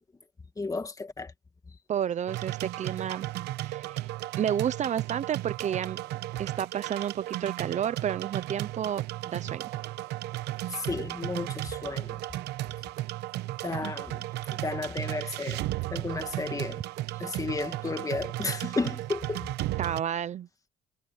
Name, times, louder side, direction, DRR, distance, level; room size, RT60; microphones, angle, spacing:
voice 1, 0.6-1.3 10.7-12.2 13.6-14.2 14.5-15.6 15.9-16.8 17.2-19.5, left 3 dB, 20° left, 2.0 m, -33 dB
voice 2, 1.9-3.2 3.6-4.1 4.4-6.0 6.4-9.6 13.8-13.9 19.8-20.5, right 9 dB, 45° right, 0.6 m, -31 dB
sound 1, 2.3-20.0, right 16 dB, 85° right, 0.9 m, -35 dB
cardioid pair, 110°, 17 cm